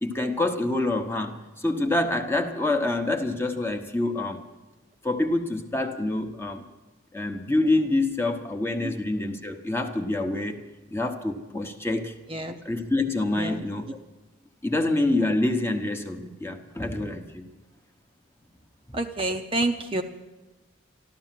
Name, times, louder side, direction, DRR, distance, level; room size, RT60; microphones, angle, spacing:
voice 1, 0.0-4.4 5.0-6.6 7.1-10.6 10.9-12.2 12.6-14.0 14.6-17.5 18.9-19.0, left 2 dB, 10° left, 5 dB, 0.9 m, -26 dB
voice 2, 12.3-12.6 13.3-13.7 18.9-20.0, right 2 dB, 25° right, 5 dB, 0.6 m, -28 dB
14.0 x 12.5 x 7.5 m, 1.1 s
head